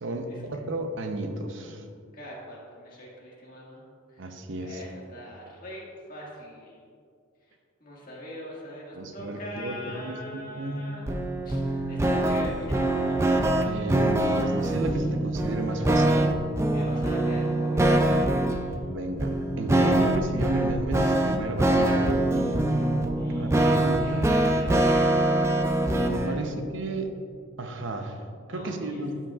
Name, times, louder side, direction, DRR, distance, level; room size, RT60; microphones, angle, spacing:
voice 1, 0.0-1.8 4.2-4.8 8.9-11.0 13.6-16.3 18.9-22.9 23.3-24.3 26.0-27.1 27.6-28.2 28.5-29.2, right 1 dB, 65° right, 6 dB, 0.7 m, -33 dB
voice 2, 2.1-3.8 4.1-4.3 4.6-6.8 7.8-11.0 11.4-13.2 16.7-18.1 18.4-18.7 23.2-25.8 26.2-26.5 28.5-29.0, equal, 40° left, -5 dB, 1.7 m, -42 dB
sound 1, 11.1-26.4, right 1 dB, 15° right, 0.3 m, -24 dB
12.0 x 5.9 x 2.3 m, 2.3 s
head